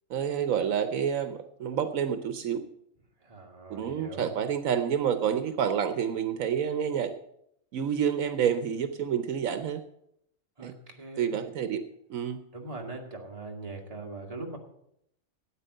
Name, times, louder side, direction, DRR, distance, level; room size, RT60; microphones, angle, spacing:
voice 1, 0.1-2.6 3.7-7.1 7.7-9.8 10.6-10.7 11.2-11.8 12.1-12.4, right 8 dB, 75° right, 10 dB, 1.2 m, -28 dB
voice 2, 3.2-4.3 10.6-11.4 12.5-14.6, right 2 dB, 25° right, 1 dB, 1.9 m, -41 dB
13.0 x 9.0 x 6.5 m, 0.76 s
omnidirectional pair, 1.4 m